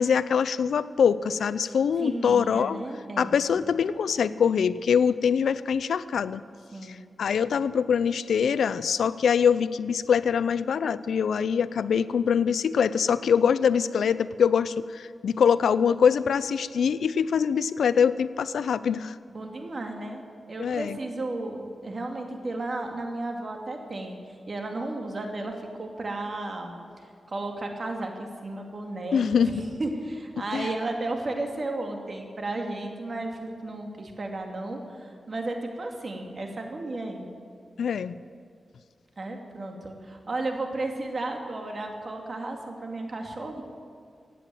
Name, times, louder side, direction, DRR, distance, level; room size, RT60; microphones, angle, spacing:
voice 1, 0.0-2.8 3.2-6.4 6.9-19.2 20.6-21.0 29.1-29.6 30.5-30.7 37.8-38.2, left 7 dB, 90° left, 16 dB, 0.4 m, -24 dB
voice 2, 2.0-3.4 6.7-7.0 19.3-24.2 24.5-29.5 29.8-37.3 39.2-43.6, right 2 dB, 50° right, 3 dB, 2.4 m, -34 dB
16.0 x 9.2 x 7.8 m, 2.3 s
cardioid pair, 60°, 0 cm